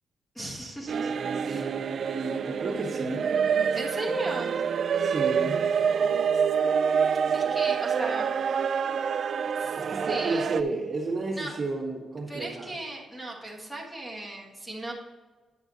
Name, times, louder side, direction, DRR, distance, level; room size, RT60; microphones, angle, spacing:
voice 1, 0.3-1.1 1.4-1.7 3.7-4.5 7.3-8.3 9.6-10.6 11.3-11.5 12.3-14.9, right 2 dB, 5° left, -2 dB, 1.6 m, -36 dB
sound 1, 0.9-10.6, right 7 dB, 50° right, 0.3 m, -27 dB
voice 2, 1.4-3.3 5.0-5.7 9.8-12.7, right 3 dB, 30° right, -2 dB, 1.5 m, -32 dB
9.8 x 6.3 x 4.0 m, 1.4 s
wide cardioid pair, 175°, 0 cm